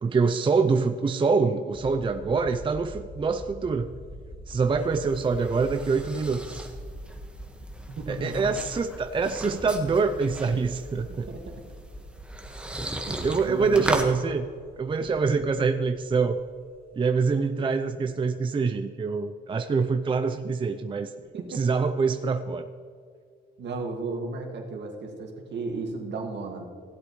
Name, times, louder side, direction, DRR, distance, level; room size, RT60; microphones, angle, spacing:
voice 1, 0.0-3.9 4.5-6.7 8.1-11.3 13.0-14.5 14.8-16.4 17.0-21.1 21.5-22.7, right 4 dB, 25° right, 8 dB, 0.5 m, -25 dB
sound 1, 1.7-17.3, equal, 25° left, 1.5 m, -45 dB
sound 2, 4.5-14.1, right 1 dB, 5° right, 1.3 m, -37 dB
voice 2, 8.0-8.5 10.9-11.6 13.4-13.9 21.3-21.7 23.6-26.6, right 3 dB, 60° right, 2 dB, 2.0 m, -34 dB
16.0 x 8.0 x 3.1 m, 2.2 s
cardioid pair, 90°, 20 cm